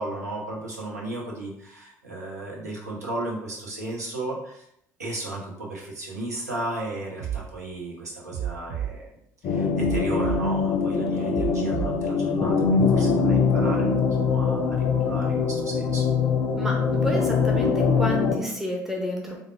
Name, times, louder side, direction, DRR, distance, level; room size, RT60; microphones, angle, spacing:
voice 1, 0.0-4.6 5.0-9.1 9.4-13.9 14.2-16.1, right 2 dB, 80° right, -3 dB, 0.7 m, -34 dB
sound 1, 7.2-7.4 8.3-8.9 9.8-10.4 11.3-11.9, right 10 dB, 55° right, 0.4 m, -30 dB
sound 2, 9.4-18.4, left 5 dB, 50° left, 0.5 m, -23 dB
voice 2, 16.6-19.4, left 1 dB, 5° right, -1 dB, 0.7 m, -30 dB
3.4 x 2.1 x 3.3 m, 0.74 s
figure-of-eight pair, 55°, 9 cm